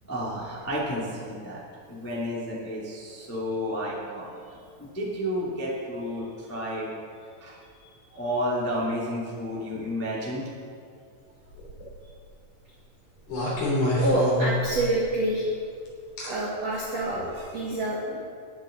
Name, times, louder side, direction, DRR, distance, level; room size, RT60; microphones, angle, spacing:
voice 1, 0.1-1.6 1.9-4.4 4.8-6.9 7.4-7.6 8.1-10.4 17.3-17.5, equal, 15° left, -6 dB, 0.4 m, -31 dB
sound 1, 11.5-11.9 13.3-15.0 16.2-16.3 17.1-17.3, left 1 dB, 40° left, 3.8 m, -27 dB
voice 2, 14.0-15.5 16.2-17.2 17.5-18.2, right 2 dB, 70° right, -5 dB, 1.5 m, -26 dB
20.0 x 10.0 x 3.9 m, 2.3 s
omnidirectional pair, 5.5 m